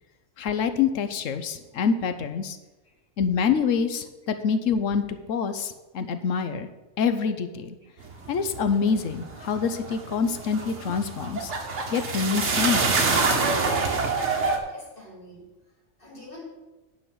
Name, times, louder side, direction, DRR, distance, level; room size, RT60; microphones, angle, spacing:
voice 1, 0.4-2.6 3.2-6.7 7.0-7.8 8.3-11.5 11.9-13.1, left 6 dB, 80° left, 9 dB, 1.1 m, -26 dB
sound 1, 8.0-14.6, right 4 dB, 65° right, 1.6 m, -26 dB
voice 2, 14.7-16.4, left 1 dB, 45° left, -4 dB, 3.8 m, -47 dB
9.5 x 5.6 x 7.9 m, 1.1 s
omnidirectional pair, 1.3 m